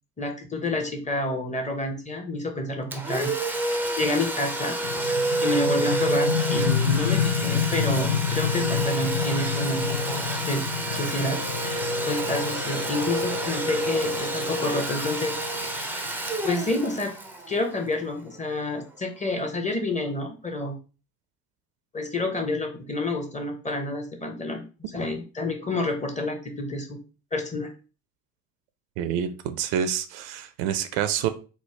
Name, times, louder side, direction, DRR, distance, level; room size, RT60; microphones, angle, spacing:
voice 1, 0.2-3.3 3.6-4.8 5.4-10.2 10.5-10.6 10.9-16.1 16.4-17.1 17.5-20.8 21.9-24.7 24.9-27.0 27.3-27.7, left 2 dB, 15° left, 0.8 m, -29 dB
Domestic sounds home sounds, 2.9-18.4, right 2 dB, 5° right, 0.4 m, -29 dB
sound 1, 4.8-16.3, left 8 dB, 55° left, 0.6 m, -29 dB
sound 2, 10.8-14.7, left 3 dB, 75° left, 1.0 m, -39 dB
voice 2, 29.0-31.3, right 9 dB, 65° right, 0.5 m, -27 dB
3.2 x 2.1 x 3.1 m
hypercardioid pair, 55°, 44 cm